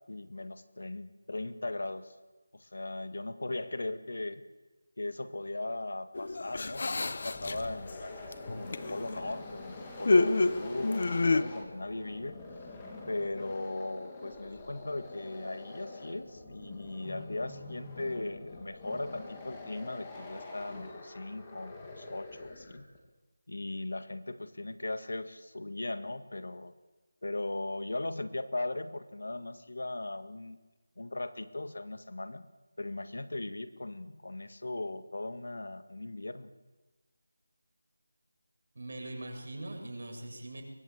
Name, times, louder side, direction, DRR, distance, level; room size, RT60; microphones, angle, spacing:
voice 1, 0.1-2.1 2.5-4.4 5.0-12.4 13.1-22.9 23.5-26.7 27.2-30.6 31.0-32.5 32.8-36.5, left 2 dB, 65° left, 9 dB, 1.9 m, -38 dB
sound 1, 6.1-7.9 8.3-9.3 10.0-11.4, left 3 dB, 35° left, 0.8 m, -28 dB
sound 2, 7.0-23.0, left 2 dB, 10° left, 2.3 m, -46 dB
voice 2, 38.8-40.6, right 1 dB, 40° right, 2 dB, 6.9 m, -41 dB
23.5 x 21.0 x 8.4 m, 1.2 s
figure-of-eight pair, 180°, 0 cm